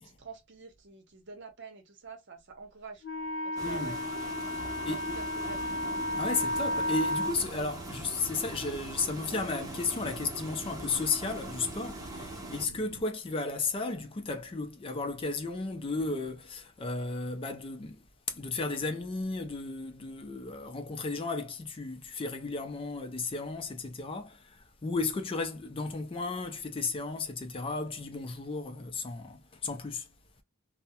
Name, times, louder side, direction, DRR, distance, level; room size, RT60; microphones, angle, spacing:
voice 1, 0.0-3.0 3.4-4.0 4.9-5.8, right 4 dB, 60° right, 0.7 m, -47 dB
Wind instrument woodwind instrument, 3.0-7.4, left 1 dB, 80° left, 0.6 m, -33 dB
voice 2, 3.6-4.0 4.8-5.2 6.2-18.0 18.3-30.1, left 3 dB, 25° left, 0.4 m, -34 dB
sound 1, 3.6-12.7, right 1 dB, 15° right, 0.6 m, -42 dB
sound 2, 5.4-13.0, right 4 dB, 75° right, 0.4 m, -50 dB
2.3 x 2.0 x 2.8 m
head